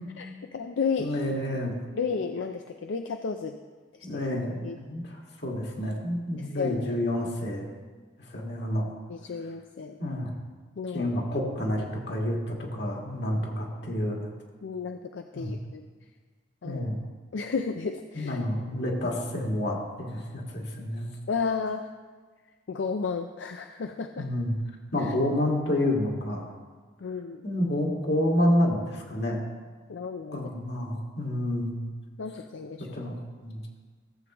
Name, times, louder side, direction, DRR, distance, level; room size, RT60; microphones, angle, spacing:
voice 1, 0.2-1.1 1.9-3.6 4.6-4.8 6.6-7.0 9.1-10.0 10.8-11.1 14.6-15.8 16.6-16.9 17.3-18.4 21.3-21.9 22.7-24.3 25.0-25.1 27.0-27.4 29.9-30.5 32.2-33.0, left 5 dB, 80° left, 6 dB, 0.4 m, -32 dB
voice 2, 1.0-1.7 4.0-7.7 8.3-8.9 10.0-10.3 10.9-14.2 15.3-15.5 16.6-17.0 18.1-21.1 24.2-24.5 24.9-26.5 27.4-29.4 30.3-31.8 32.8-33.1 33.4-33.6, left 1 dB, 60° left, -1 dB, 1.8 m, -29 dB
16.0 x 7.7 x 3.0 m, 1.4 s
head